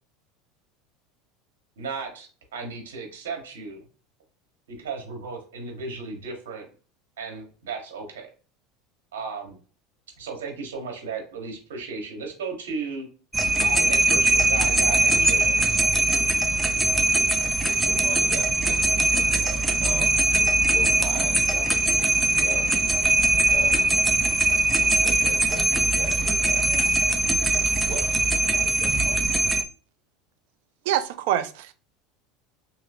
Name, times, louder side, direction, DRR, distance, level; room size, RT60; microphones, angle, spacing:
voice 1, 1.8-3.8 4.7-6.7 7.2-8.3 9.1-9.6 10.2-13.1 13.6-15.6, right 4 dB, 90° right, 1.2 m, -35 dB
sound 1, 13.3-29.6, right 2 dB, 5° right, 0.5 m, -21 dB
voice 2, 17.5-22.7 23.5-23.9 25.0-27.3 27.7-29.3, right 2 dB, 40° right, 1.4 m, -40 dB
voice 3, 30.9-31.7, right 11 dB, 75° right, 0.4 m, -25 dB
3.0 x 2.8 x 2.5 m
supercardioid pair, 105°, 0 cm